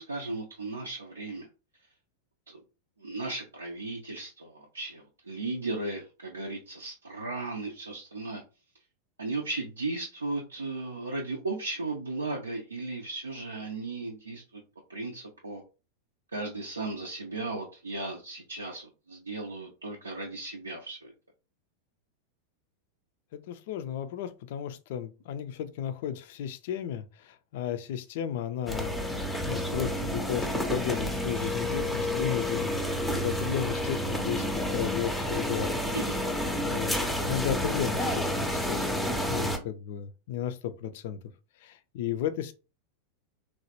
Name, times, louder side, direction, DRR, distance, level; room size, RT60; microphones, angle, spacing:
voice 1, 0.0-1.5 2.5-2.6 3.0-8.4 9.2-14.4 14.9-15.6 16.3-21.1 35.9-36.2, right 3 dB, 80° right, 0.4 m, -36 dB
voice 2, 23.3-35.9 36.7-41.2 41.6-42.5, left 10 dB, 50° left, 0.3 m, -34 dB
sound 1, 28.7-39.6, left 1 dB, 5° left, 0.5 m, -30 dB
3.1 x 2.1 x 2.8 m
figure-of-eight pair, 90°, 0 cm